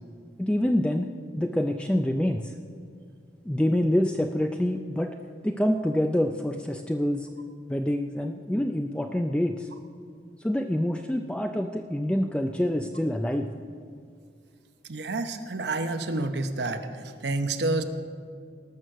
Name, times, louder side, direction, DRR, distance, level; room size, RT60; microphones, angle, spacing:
voice 1, 0.4-1.1 1.4-2.5 3.5-5.2 5.4-7.3 7.7-9.7 10.4-13.5, left 1 dB, 5° left, 5 dB, 0.4 m, -26 dB
voice 2, 14.9-16.9 17.2-17.8, right 2 dB, 70° right, 8 dB, 0.9 m, -28 dB
19.0 x 6.3 x 6.5 m, 2.2 s
head